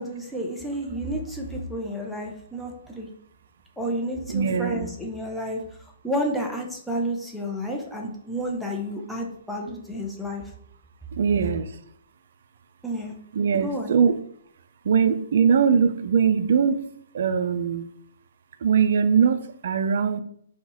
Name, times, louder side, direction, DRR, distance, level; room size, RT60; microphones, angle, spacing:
voice 1, 0.0-3.1 3.8-5.6 6.0-10.4 12.8-13.1 13.5-14.0, equal, ahead, -1 dB, 0.6 m, -31 dB
voice 2, 4.3-4.9 11.2-11.6 13.3-14.2 14.9-16.9 17.1-17.8 18.6-20.2, right 6 dB, 65° right, 10 dB, 0.3 m, -21 dB
2.9 x 2.3 x 4.0 m, 0.66 s
hypercardioid pair, 135°, 0 cm